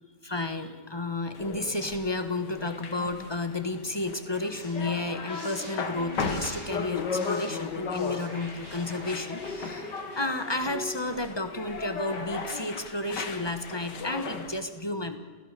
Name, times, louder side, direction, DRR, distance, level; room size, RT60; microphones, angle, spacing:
voice 1, 0.2-15.2, left 2 dB, 15° left, 8 dB, 1.2 m, -32 dB
sound 1, 1.3-14.6, left 4 dB, 80° left, 2.2 m, -36 dB
sound 2, 4.1-12.1, right 1 dB, 75° right, 7.2 m, -47 dB
30.0 x 16.0 x 6.8 m, 1.4 s
omnidirectional pair, 1.9 m